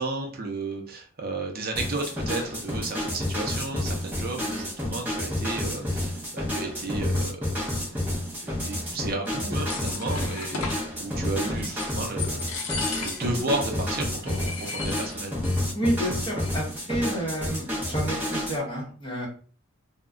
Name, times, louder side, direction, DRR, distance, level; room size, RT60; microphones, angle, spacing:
voice 1, 0.0-7.7 8.4-12.7 13.0-15.4, right 2 dB, 40° right, 2 dB, 0.5 m, -33 dB
sound 1, 1.7-18.6, left 1 dB, 10° right, 0.7 m, -30 dB
sound 2, 9.3-10.9 11.4-11.9 12.2-13.4 13.7-13.8 14.2-15.6 15.9-16.0 16.2-16.7, left 5 dB, 70° left, 0.6 m, -36 dB
voice 2, 15.7-19.3, right 1 dB, 25° left, -3 dB, 0.9 m, -30 dB
2.3 x 2.0 x 3.5 m, 0.41 s
head